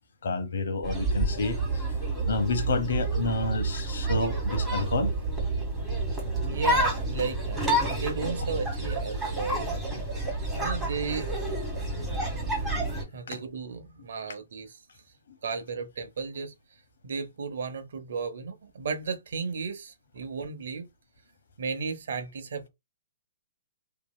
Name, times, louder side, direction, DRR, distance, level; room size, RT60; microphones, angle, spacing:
voice 1, 0.2-2.0 2.3-5.1 13.3-13.4, left 3 dB, 70° left, 0.9 m, -29 dB
sound 1, 0.8-13.0, right 2 dB, 5° right, 1.7 m, -29 dB
voice 2, 6.4-9.8 10.5-11.3 13.1-14.8 15.4-16.5 17.0-20.9 21.6-22.7, right 5 dB, 70° right, 0.7 m, -34 dB
2.9 x 2.7 x 2.2 m
hypercardioid pair, 130°, 0 cm